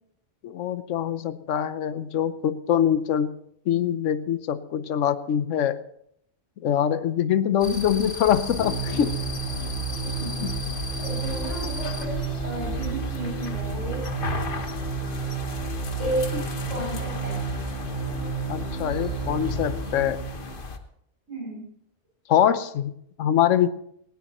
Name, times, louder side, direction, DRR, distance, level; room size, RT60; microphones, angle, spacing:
voice 1, 0.4-3.3 3.7-5.8 6.6-9.1 10.4-10.6 16.3-16.4 18.5-20.2 22.3-22.9 23.2-23.7, left 9 dB, 75° left, 13 dB, 1.1 m, -24 dB
sound 1, 7.6-20.8, left 4 dB, 45° left, 1.2 m, -35 dB
sound 2, 8.5-20.5, right 5 dB, 55° right, 5.7 m, -31 dB
voice 2, 9.9-10.5 11.0-14.1 16.0-17.4 21.3-21.7, right 2 dB, 70° right, -2 dB, 7.2 m, -33 dB
18.5 x 17.5 x 3.0 m, 0.72 s
omnidirectional pair, 1.3 m